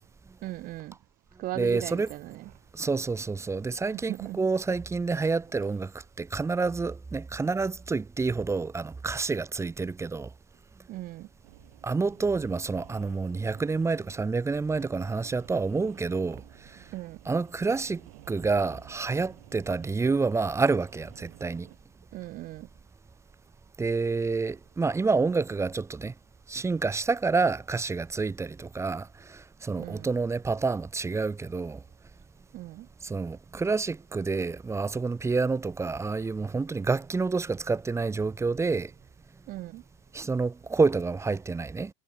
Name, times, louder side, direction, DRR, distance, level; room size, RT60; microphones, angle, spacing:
voice 1, 0.4-0.9 1.4-2.5 3.9-4.5 10.9-11.3 16.9-17.2 22.1-22.7 29.8-30.1 32.5-32.9 39.5-39.8, right 16 dB, 50° right, 4.0 m, -38 dB
voice 2, 1.6-2.1 2.8-5.9 6.2-10.3 11.8-16.4 17.3-18.0 18.3-21.7 23.8-26.1 26.5-29.1 29.6-31.8 33.0-38.9 40.1-41.9, right 4 dB, 15° right, 4.3 m, -28 dB
sound 1, 11.4-21.8, right 30 dB, 75° right, 7.3 m, -53 dB
supercardioid pair, 125°, 18 cm